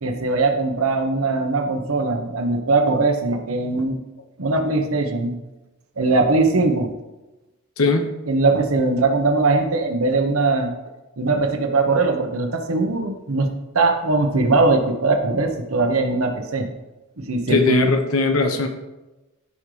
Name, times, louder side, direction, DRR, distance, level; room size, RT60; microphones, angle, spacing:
voice 1, 0.0-4.0 4.4-5.4 6.0-6.9 8.3-10.7 11.2-16.7 17.2-17.9, right 3 dB, 85° right, 4 dB, 1.1 m, -20 dB
voice 2, 7.8-8.1 17.5-18.7, left 3 dB, 90° left, 6 dB, 1.1 m, -19 dB
14.0 x 5.4 x 3.3 m, 1.1 s
head